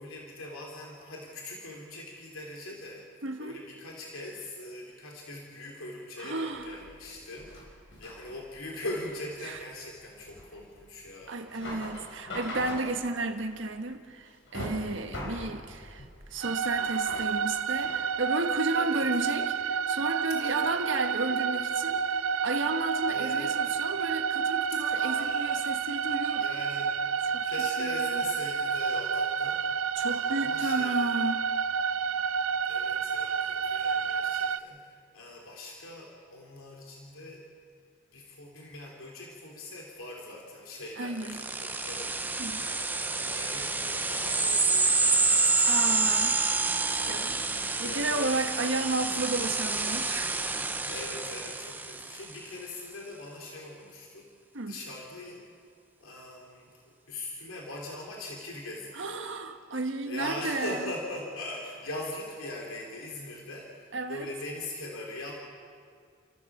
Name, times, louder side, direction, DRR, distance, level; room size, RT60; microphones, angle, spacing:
voice 1, 0.0-11.4 15.1-15.5 18.7-19.0 20.4-20.9 23.1-23.5 24.9-25.6 26.1-27.1 27.4-29.8 30.0-31.0 32.7-37.5 38.1-42.1 42.5-44.9 46.9-47.4 47.8-48.8 50.9-54.3 54.7-55.5 56.0-59.4 60.1-65.3, left 2 dB, 90° left, -1 dB, 3.1 m, -41 dB
voice 2, 3.2-3.6 6.2-6.8 9.4-9.6 11.3-26.4 27.3-27.5 27.8-28.2 30.0-31.5 41.0-41.4 42.4-42.6 45.6-46.4 47.1-47.4 47.8-50.4 54.5-54.8 58.9-60.9 63.9-64.3, right 2 dB, 65° right, 6 dB, 1.5 m, -33 dB
sound 1, 6.5-18.1, left 1 dB, 65° left, 5.2 m, -42 dB
sound 2, 16.4-34.6, right 6 dB, 85° right, 0.6 m, -29 dB
sound 3, 41.2-52.3, right 3 dB, 10° right, 0.7 m, -28 dB
29.5 x 14.5 x 7.2 m, 2.2 s
head